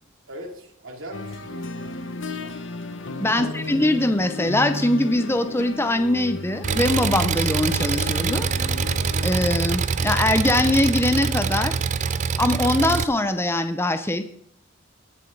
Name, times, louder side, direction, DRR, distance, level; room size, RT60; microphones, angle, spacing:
voice 1, 0.3-2.1 3.3-3.6, equal, 80° right, 2 dB, 2.7 m, -40 dB
sound 1, 1.1-12.6, left 2 dB, 65° left, 1.0 m, -35 dB
voice 2, 3.2-8.5 9.2-11.8 12.4-14.2, left 1 dB, 10° left, 9 dB, 0.7 m, -22 dB
Engine, 6.6-13.0, right 5 dB, 35° right, 0.4 m, -24 dB
19.5 x 7.1 x 3.9 m, 0.67 s
head